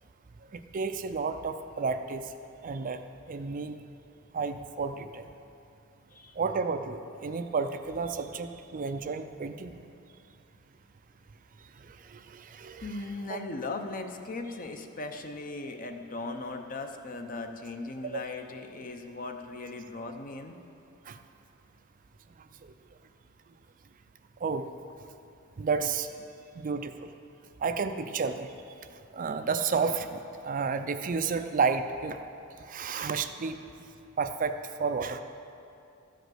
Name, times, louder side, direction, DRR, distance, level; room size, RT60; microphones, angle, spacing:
voice 1, 0.5-2.3 2.6-3.0 3.3-3.8 4.3-5.2 6.4-9.8 11.8-12.9 13.3-13.4 18.1-18.2 21.1-21.2 22.6-22.7 24.4-24.7 25.6-26.1 26.6-27.1 27.6-28.5 29.1-32.2 32.7-33.6 34.2-35.2, right 5 dB, 40° right, 8 dB, 0.4 m, -31 dB
voice 2, 12.8-20.6, left 3 dB, 40° left, 5 dB, 0.7 m, -38 dB
13.0 x 5.1 x 7.7 m, 2.6 s
head